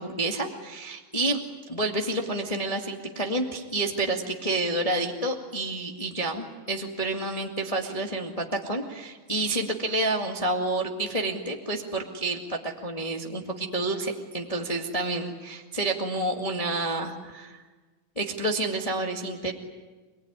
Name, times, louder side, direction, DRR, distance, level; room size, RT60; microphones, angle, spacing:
voice 1, 0.0-1.4 1.7-17.6 18.1-19.5, right 2 dB, 20° left, 1 dB, 1.1 m, -29 dB
28.0 x 20.0 x 9.8 m, 1.3 s
omnidirectional pair, 4.2 m